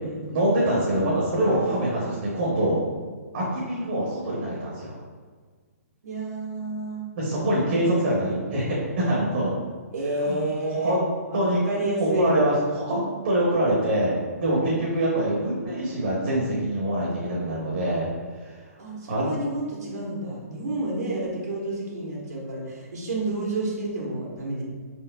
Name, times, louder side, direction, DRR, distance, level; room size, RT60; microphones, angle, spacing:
voice 1, 0.3-2.8 3.3-5.0 7.1-9.5 10.2-10.4 10.8-11.1 11.3-11.6 12.0-18.1 18.4-18.6 19.1-19.3, right 1 dB, 45° right, -5 dB, 0.9 m, -24 dB
voice 2, 6.0-7.7 9.9-11.0 11.3-12.3 18.8-24.6, right 1 dB, 90° right, -4 dB, 1.2 m, -30 dB
4.3 x 4.0 x 2.2 m, 1.5 s
hypercardioid pair, 170°, 9 cm